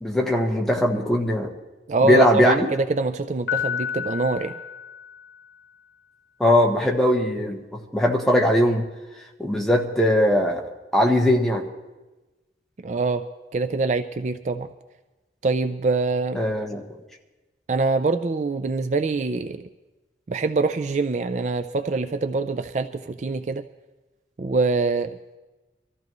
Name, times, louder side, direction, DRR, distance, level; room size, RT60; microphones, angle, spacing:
voice 1, 0.0-1.5 2.0-2.7 6.4-7.6 7.9-8.9 9.4-10.6 10.9-11.7 16.3-16.9, equal, ahead, 0 dB, 1.2 m, -20 dB
voice 2, 1.9-4.5 12.8-13.3 13.5-14.7 15.4-16.4 17.7-19.6 20.3-23.6 24.4-25.2, right 3 dB, 40° right, 9 dB, 0.4 m, -24 dB
Piano, 3.5-5.6, left 9 dB, 85° left, 1.2 m, -31 dB
24.0 x 14.0 x 3.1 m, 1.1 s
head